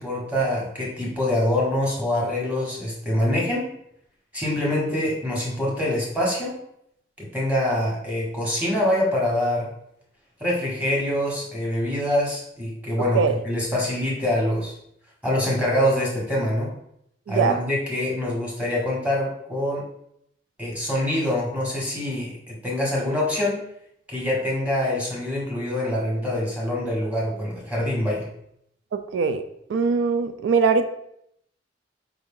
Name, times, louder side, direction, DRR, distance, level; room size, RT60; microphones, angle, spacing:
voice 1, 0.0-3.7 4.3-6.6 7.2-9.7 10.4-14.7 15.2-16.7 17.3-19.8 20.6-23.6 24.1-28.3, left 1 dB, 10° right, -4 dB, 1.2 m, -25 dB
voice 2, 17.3-17.6 28.9-29.4 29.7-30.9, right 5 dB, 90° right, 9 dB, 0.3 m, -21 dB
4.6 x 2.6 x 3.6 m, 0.74 s
head